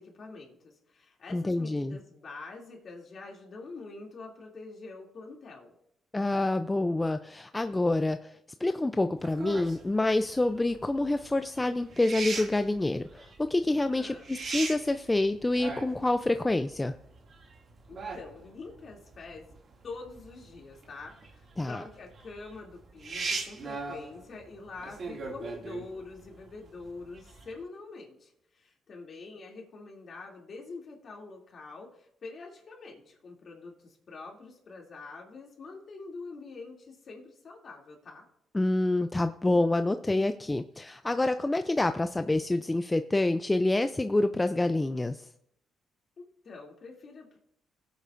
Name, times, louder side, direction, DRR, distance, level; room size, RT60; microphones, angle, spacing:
voice 1, 0.0-5.7 14.0-14.3 17.9-19.6 19.8-38.3 46.2-47.4, left 3 dB, 50° left, -1 dB, 2.6 m, -45 dB
voice 2, 1.3-2.0 6.1-16.9 21.6-21.8 38.5-45.3, left 2 dB, 15° left, 9 dB, 0.4 m, -27 dB
sound 1, 9.2-27.6, right 4 dB, 50° right, 2.2 m, -40 dB
17.0 x 8.3 x 2.5 m, 0.75 s
cardioid pair, 90°, 0 cm